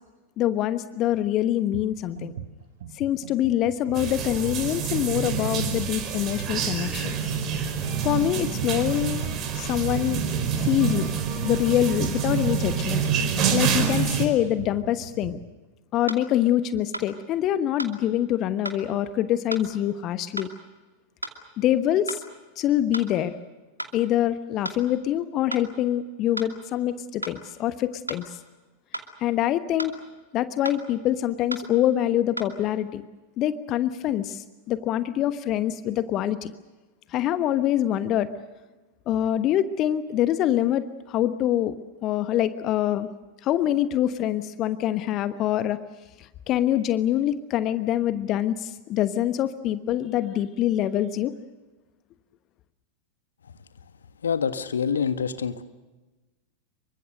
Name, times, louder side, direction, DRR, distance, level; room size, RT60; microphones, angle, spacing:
voice 1, 0.4-2.3 2.9-7.1 8.0-10.2 10.6-11.1 11.4-15.4 15.9-20.5 21.6-22.2 22.6-23.3 23.9-28.4 29.2-29.9 30.3-33.0 33.4-36.5 37.1-38.3 39.1-41.7 42.0-43.1 43.4-45.8 46.2-51.3, left 12 dB, 35° left, 13 dB, 1.2 m, -25 dB
sound 1, 1.7-1.9 2.2-15.5, right 8 dB, 60° right, 1.7 m, -39 dB
sound 2, 3.9-14.3, right 6 dB, 30° right, 4.9 m, -27 dB
sound 3, 16.1-16.2 16.9-17.1 17.8-18.0 18.7-18.8 19.5-19.7 20.4-20.5 21.2-21.4 22.1-22.2 22.9-23.1 23.8-24.0 24.6-24.8 25.5-25.7 26.4-26.5 27.2-27.4 28.1-28.3 28.9-29.1 29.8-30.0 30.7-30.8 31.5-31.7 32.4-32.5, right 1 dB, 85° right, 2.5 m, -34 dB
voice 2, 54.2-55.6, left 6 dB, 70° left, 11 dB, 1.4 m, -26 dB
28.0 x 24.0 x 6.7 m, 1.2 s
figure-of-eight pair, 90°, 0 cm